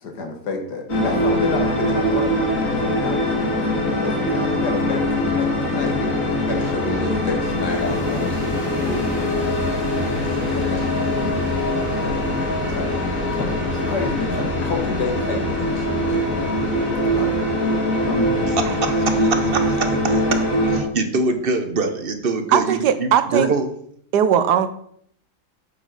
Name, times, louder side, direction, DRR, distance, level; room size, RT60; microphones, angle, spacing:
voice 1, 0.0-11.2 12.0-13.0 13.3-16.2 17.2-17.3 18.1-18.4, left 3 dB, 80° left, 3 dB, 2.0 m, -30 dB
sound 1, 0.9-20.8, left 1 dB, 50° left, 2.2 m, -22 dB
voice 2, 18.6-23.7, right 3 dB, 45° right, 8 dB, 0.9 m, -24 dB
voice 3, 22.5-23.5 24.1-24.7, right 9 dB, 80° right, 11 dB, 1.3 m, -18 dB
9.0 x 7.0 x 4.0 m, 0.66 s
omnidirectional pair, 1.8 m